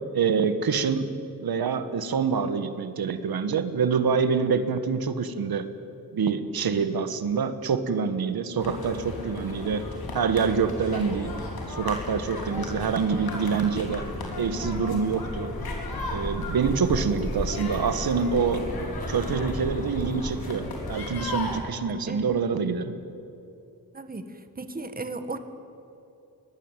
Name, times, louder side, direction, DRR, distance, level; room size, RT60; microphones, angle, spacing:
voice 1, 0.1-1.1 1.4-5.7 6.1-9.9 10.1-11.3 11.7-14.0 14.3-15.5 16.1-18.6 19.1-23.0, right 5 dB, 85° right, 10 dB, 1.5 m, -26 dB
sound 1, 8.6-21.6, left 2 dB, 85° left, 5.0 m, -35 dB
sound 2, 13.8-20.3, left 1 dB, 25° left, 2.8 m, -36 dB
voice 2, 23.9-24.3 24.6-25.4, right 3 dB, 25° right, 9 dB, 1.6 m, -35 dB
24.0 x 18.5 x 9.1 m, 2.8 s
wide cardioid pair, 130°, 36 cm